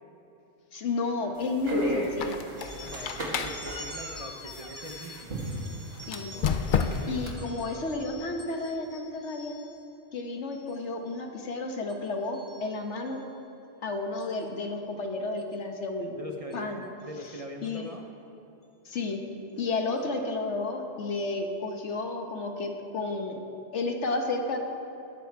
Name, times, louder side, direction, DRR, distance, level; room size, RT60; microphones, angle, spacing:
voice 1, 0.7-2.4 6.1-6.3 7.1-9.5 10.1-13.2 13.8-16.2 16.5-16.8 17.6-17.9 18.8-19.3 19.5-23.4 23.7-24.6, left 3 dB, 80° left, 4 dB, 1.4 m, -32 dB
sound 1, 1.4-7.3, equal, 60° right, 2.2 m, -36 dB
Squeak, 2.0-5.2 6.0-7.3, left 6 dB, 55° left, 0.7 m, -32 dB
sound 2, 2.6-9.9 10.4-10.7 11.1-11.5 11.9-13.2 14.2-14.4 15.4-15.5 16.5-16.6 17.0-17.1 17.6-17.9, left 1 dB, 20° left, 1.1 m, -47 dB
voice 2, 2.7-5.4 6.3-7.9 16.1-18.1, right 1 dB, 35° right, 3 dB, 0.8 m, -43 dB
20.5 x 7.4 x 4.6 m, 2.8 s
omnidirectional pair, 1.2 m